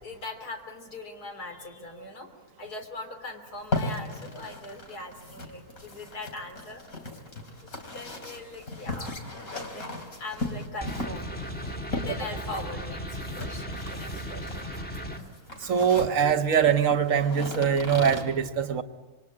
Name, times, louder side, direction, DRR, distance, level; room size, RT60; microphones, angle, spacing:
voice 1, 0.0-2.3 2.6-6.8 7.9-9.2 9.5-11.4 11.9-14.7, left 2 dB, 90° left, 3.7 m, -41 dB
sound 1, 3.5-18.2, left 2 dB, 65° left, 3.6 m, -37 dB
sound 2, 10.8-15.2, equal, 5° left, 1.8 m, -36 dB
voice 2, 15.6-18.8, right 7 dB, 60° right, 1.4 m, -23 dB
27.0 x 23.5 x 8.6 m
omnidirectional pair, 1.6 m